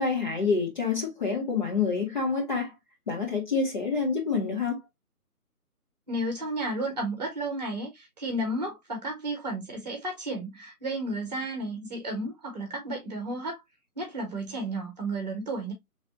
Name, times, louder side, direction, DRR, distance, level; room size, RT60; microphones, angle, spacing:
voice 1, 0.0-2.7 3.1-4.8, left 4 dB, 30° left, 1.1 m, -27 dB
voice 2, 6.1-13.6 13.9-15.7, right 1 dB, 25° right, 1.3 m, -32 dB
4.4 x 3.3 x 2.6 m
figure-of-eight pair, 150°, 46 cm